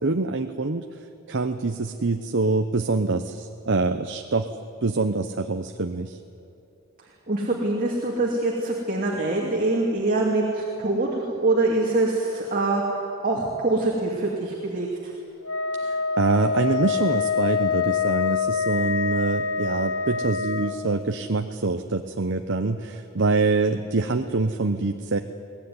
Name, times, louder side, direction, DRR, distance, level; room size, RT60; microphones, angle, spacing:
voice 1, 0.0-0.8 1.3-4.5 4.8-6.2 15.8-25.2, right 3 dB, 55° right, 6 dB, 0.8 m, -25 dB
voice 2, 7.3-12.8 13.2-15.1, right 2 dB, 40° right, -2 dB, 2.6 m, -24 dB
Wind instrument woodwind instrument, 15.4-20.8, left 5 dB, 75° left, 1.1 m, -25 dB
22.5 x 18.0 x 9.6 m, 2.8 s
head